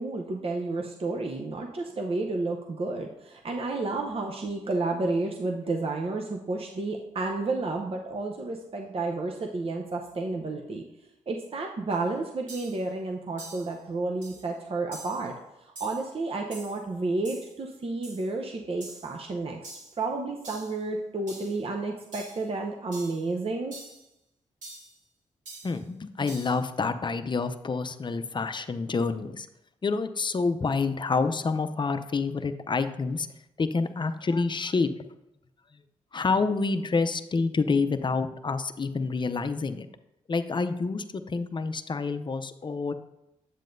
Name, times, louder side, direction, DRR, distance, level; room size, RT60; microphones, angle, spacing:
voice 1, 0.0-10.8 11.3-15.3 15.6-19.7 20.0-23.8, right 3 dB, 45° right, 2 dB, 0.8 m, -31 dB
sound 1, 11.9-12.0 12.5-12.8 13.4-13.7 14.2-14.5 14.9-15.3 15.7-16.1 16.5-16.8 17.2-17.5 18.0-18.3 18.8-19.1 19.6-20.0 20.4-20.8 21.3-21.6 22.1-22.5 22.9-23.2 23.7-24.0 24.6-24.9 25.5-25.8 26.3-26.6, right 2 dB, 75° right, 3.0 m, -45 dB
voice 2, 25.6-29.5 29.8-33.3 33.6-35.1 35.7-35.8 36.1-39.9 40.3-42.9, left 4 dB, 35° left, 9 dB, 0.6 m, -28 dB
8.3 x 7.4 x 2.6 m, 0.87 s
supercardioid pair, 45°, 13 cm